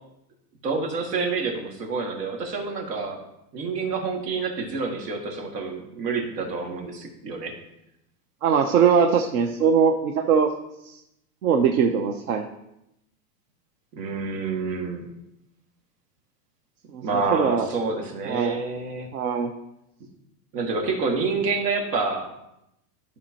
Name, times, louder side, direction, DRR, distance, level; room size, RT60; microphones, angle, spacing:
voice 1, 0.6-3.2 3.5-7.5 13.9-15.0 17.0-19.1 20.5-22.3, right 4 dB, 80° right, 1 dB, 2.2 m, -28 dB
voice 2, 8.4-10.5 10.9-11.0 11.4-12.4 16.9-17.7 18.2-18.6 19.1-19.5, right 6 dB, 60° right, 4 dB, 0.8 m, -21 dB
13.0 x 5.4 x 2.9 m, 0.84 s
supercardioid pair, 170°, 48 cm